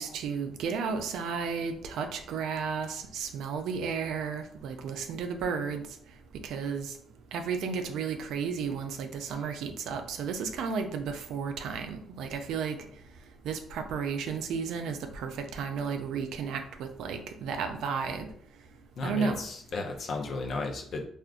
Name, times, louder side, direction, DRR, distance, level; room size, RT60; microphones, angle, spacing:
voice 1, 0.0-5.8 6.4-7.0 7.3-12.8 13.4-18.3 19.0-19.4, right 6 dB, 80° right, 6 dB, 0.4 m, -33 dB
voice 2, 19.0-21.1, left 3 dB, 60° left, 3 dB, 0.5 m, -34 dB
3.6 x 2.4 x 2.3 m, 0.63 s
cardioid pair, 90°, 0 cm